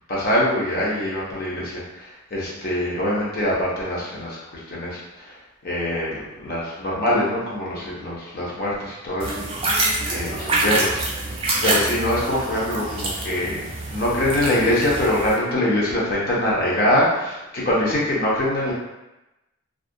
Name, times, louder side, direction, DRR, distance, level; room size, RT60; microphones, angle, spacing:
voice 1, 0.1-4.4 4.7-5.4 5.6-9.3 10.1-11.0 11.6-18.7, left 1 dB, 45° left, -6 dB, 0.6 m, -23 dB
sound 1, 9.2-15.3, right 2 dB, 25° right, 0.4 m, -26 dB
2.3 x 2.1 x 2.6 m, 0.99 s
head